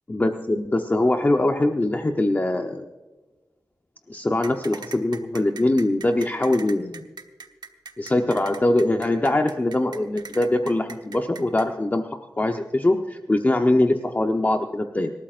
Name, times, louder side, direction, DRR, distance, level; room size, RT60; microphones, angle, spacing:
voice 1, 0.1-2.8 4.1-7.1 8.0-12.0 12.4-15.1, left 1 dB, 25° left, 4 dB, 0.8 m, -22 dB
sound 1, 4.4-11.7, right 4 dB, 80° right, 1.1 m, -40 dB
26.5 x 13.0 x 2.5 m, 1.2 s
wide cardioid pair, 105°, 7 cm